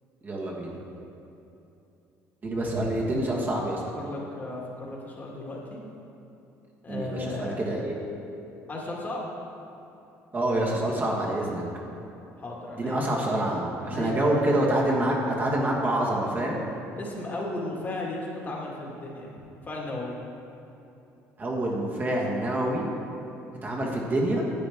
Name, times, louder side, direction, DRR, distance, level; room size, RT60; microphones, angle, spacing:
voice 1, 0.2-0.7 2.4-3.8 6.9-7.9 10.3-11.6 12.8-16.6 21.4-22.9 23.6-24.4, right 1 dB, 30° right, -3 dB, 1.5 m, -26 dB
voice 2, 3.9-5.8 6.8-7.6 8.7-9.2 12.4-13.4 13.8-14.5 17.0-19.3 19.6-20.2, left 2 dB, 30° left, -2 dB, 1.8 m, -35 dB
10.0 x 7.9 x 3.5 m, 2.9 s
cardioid pair, 100°, 6 cm